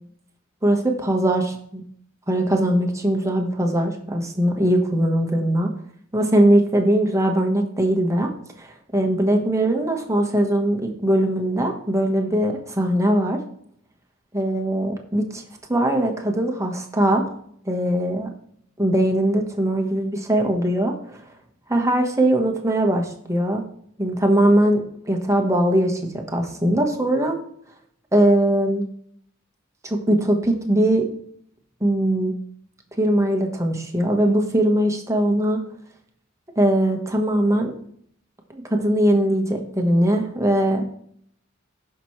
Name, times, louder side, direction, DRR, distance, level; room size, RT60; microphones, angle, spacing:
voice 1, 0.6-1.8 2.3-5.7 6.1-8.3 8.6-13.4 14.3-15.4 15.7-17.2 17.6-18.3 18.8-21.2 21.7-23.6 24.0-27.3 28.1-28.8 29.8-31.0 31.8-32.3 33.0-35.6 36.5-37.7 38.5-40.8, right 1 dB, 15° right, 2 dB, 1.4 m, -20 dB
16.0 x 6.0 x 3.3 m, 0.67 s
head